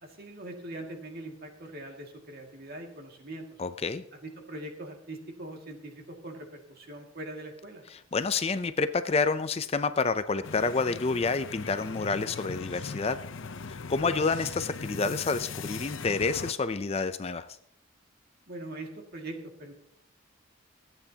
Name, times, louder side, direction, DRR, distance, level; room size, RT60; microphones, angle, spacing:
voice 1, 0.0-3.4 4.1-7.8 18.5-19.7, right 1 dB, 50° right, 2 dB, 2.1 m, -42 dB
voice 2, 3.6-4.0 7.9-13.2 13.7-17.5, left 4 dB, 30° left, 12 dB, 0.4 m, -29 dB
sound 1, 10.4-16.5, left 5 dB, 70° left, 0.7 m, -39 dB
27.0 x 9.1 x 2.8 m, 0.70 s
head